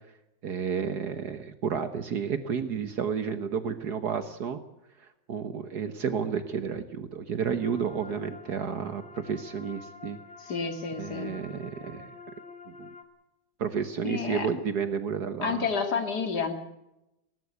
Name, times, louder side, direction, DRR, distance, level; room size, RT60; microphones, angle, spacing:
voice 1, 0.4-4.6 5.3-10.2 11.0-12.1 12.7-12.9 13.6-15.6, right 7 dB, 60° right, 10 dB, 1.7 m, -31 dB
sound 1, 7.6-13.0, left 4 dB, 35° left, 3.0 m, -48 dB
voice 2, 10.4-11.3 14.0-14.5 15.4-16.5, left 5 dB, 60° left, 6 dB, 3.0 m, -30 dB
19.5 x 18.5 x 8.2 m, 0.91 s
omnidirectional pair, 2.0 m